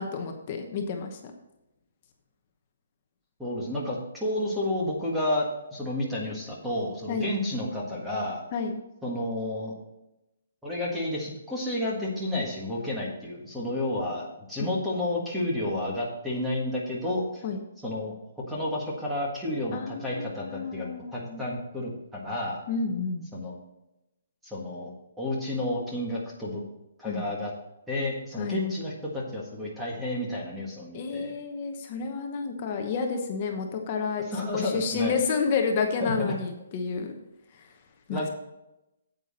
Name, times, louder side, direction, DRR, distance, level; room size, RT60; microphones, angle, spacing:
voice 1, 0.0-1.3 7.1-7.3 8.5-8.8 14.6-14.7 17.4-17.6 19.7-21.4 22.7-23.3 27.0-27.2 28.4-28.6 30.9-34.2 34.5-37.1 38.1-38.3, left 5 dB, 25° left, 4 dB, 1.0 m, -30 dB
voice 2, 3.4-5.5 5.7-8.4 9.0-9.7 10.6-17.4 17.8-18.1 18.5-20.9 21.1-22.6 23.3-23.6 24.4-24.9 25.2-26.6 27.0-27.5 27.9-31.4 34.3-35.1 36.0-36.1 38.1-38.3, left 1 dB, 5° right, -5 dB, 1.7 m, -31 dB
9.1 x 8.4 x 4.2 m, 0.90 s
hypercardioid pair, 175°, 0 cm